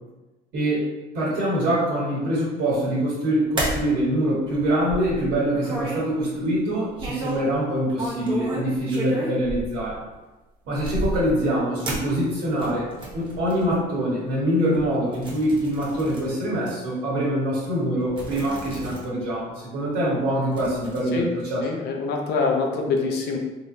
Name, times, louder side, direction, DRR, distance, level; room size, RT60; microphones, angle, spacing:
voice 1, 0.5-0.9 1.1-10.0 10.7-21.2 21.5-21.6, right 1 dB, 75° right, -7 dB, 1.5 m, -24 dB
sound 1, 3.6-3.9 4.5-6.1 7.0-7.5 7.9-10.1 10.8-11.4 11.8-13.7 14.3-14.4 14.7-16.3 16.7-16.8 17.7-17.8 18.1-19.0 19.4-19.5 20.5-21.0, right 2 dB, 30° right, 1.0 m, -32 dB
voice 2, 21.6-23.4, left 4 dB, 80° left, 1 dB, 0.6 m, -25 dB
3.7 x 3.0 x 2.6 m, 1.1 s
cardioid pair, 110°, 17 cm